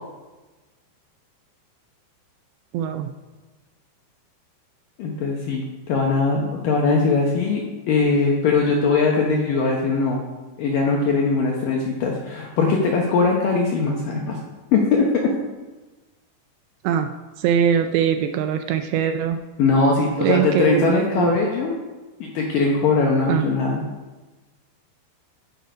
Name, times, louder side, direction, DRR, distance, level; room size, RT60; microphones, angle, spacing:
voice 1, 2.7-3.1 16.8-17.1 17.4-19.4 20.2-21.3 23.3-23.5, right 8 dB, 80° right, 7 dB, 2.6 m, -22 dB
voice 2, 5.0-7.6 7.9-10.2 10.6-14.4 14.7-15.1 19.6-21.7 22.2-23.8, left 4 dB, 75° left, -1 dB, 2.1 m, -20 dB
14.0 x 6.5 x 5.1 m, 1.2 s
omnidirectional pair, 5.4 m